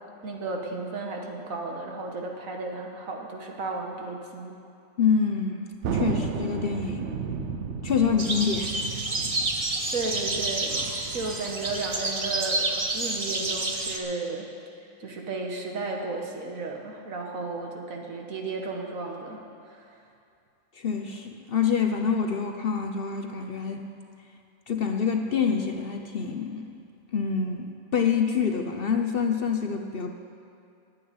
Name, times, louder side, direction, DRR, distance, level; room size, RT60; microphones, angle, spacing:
voice 1, 0.2-4.6 9.9-10.8 11.1-12.7 12.9-14.5 15.0-19.8, right 3 dB, 80° right, 1 dB, 1.7 m, -34 dB
voice 2, 5.0-5.6 5.9-7.1 7.8-8.7 20.8-23.8 24.7-26.7 27.1-30.1, left 6 dB, 50° left, 5 dB, 0.9 m, -26 dB
Thunder, 5.8-12.7, right 5 dB, 60° right, 1.0 m, -34 dB
sound 1, 8.2-14.0, right 2 dB, 30° right, 1.0 m, -29 dB
10.5 x 8.7 x 9.3 m, 2.5 s
omnidirectional pair, 1.4 m